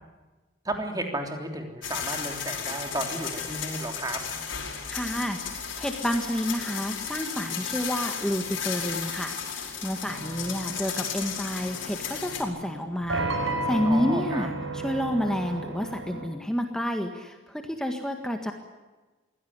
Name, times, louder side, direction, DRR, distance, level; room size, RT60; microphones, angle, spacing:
voice 1, 0.6-4.2 13.8-14.5, right 1 dB, 20° right, 4 dB, 3.3 m, -33 dB
sound 1, 1.8-12.4, left 7 dB, 75° left, 4.9 m, -34 dB
voice 2, 4.9-5.4 5.8-18.5, equal, 5° left, 4 dB, 1.7 m, -29 dB
sound 2, 10.0-16.3, right 2 dB, 85° right, 3.6 m, -34 dB
23.5 x 16.5 x 9.7 m, 1.2 s
head